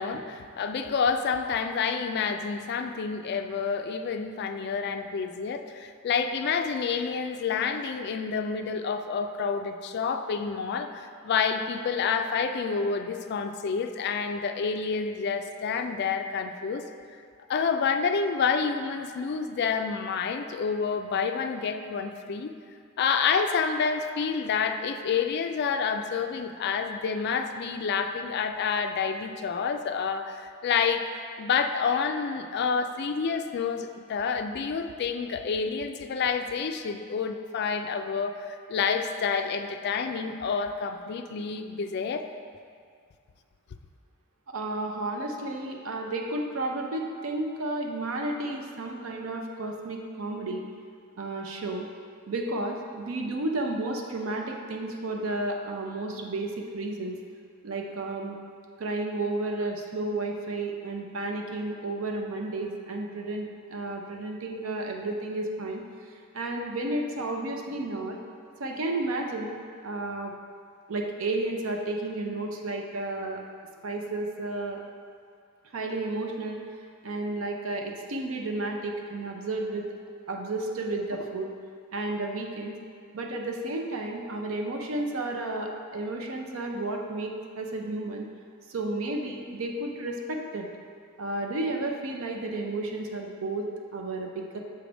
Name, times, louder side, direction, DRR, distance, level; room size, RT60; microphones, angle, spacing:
voice 1, 0.0-16.8 17.5-22.5 23.0-31.0 31.4-42.3, left 5 dB, 50° left, 7 dB, 0.3 m, -28 dB
voice 2, 44.5-50.6 51.2-51.9 52.3-57.2 57.6-58.4 58.8-65.8 66.3-68.2 68.6-70.3 70.9-73.4 73.8-74.8 75.7-76.6 77.0-79.9 80.3-81.5 81.9-82.8 83.1-88.3 88.7-90.7 91.2-94.6, right 2 dB, 75° right, 1 dB, 0.6 m, -32 dB
6.8 x 3.4 x 5.0 m, 2.2 s
head